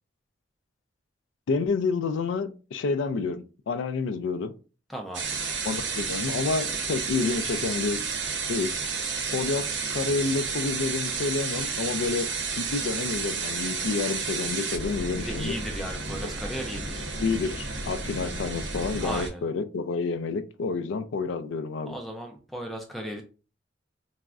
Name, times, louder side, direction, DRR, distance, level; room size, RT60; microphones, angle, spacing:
voice 1, 1.5-4.5 5.6-8.0 8.5-8.7 9.3-12.3 12.6-15.5 17.2-21.9, left 4 dB, 80° left, 0.3 m, -29 dB
voice 2, 4.9-5.3 15.2-17.1 19.0-19.4 21.9-23.2, equal, ahead, 0.3 m, -36 dB
sound 1, 5.1-19.3, right 5 dB, 70° right, 0.6 m, -31 dB
3.4 x 2.0 x 2.3 m
head